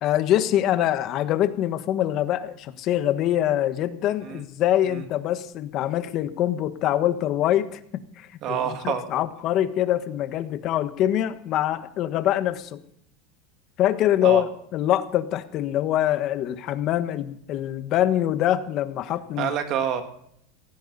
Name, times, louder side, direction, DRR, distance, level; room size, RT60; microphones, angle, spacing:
voice 1, 0.0-7.8 8.2-12.8 13.8-19.5, left 12 dB, 45° left, 10 dB, 1.4 m, -24 dB
voice 2, 8.4-9.0 14.2-14.4 19.4-20.0, right 8 dB, 45° right, 6 dB, 2.5 m, -27 dB
17.5 x 15.5 x 4.2 m, 0.68 s
supercardioid pair, 140°, 0 cm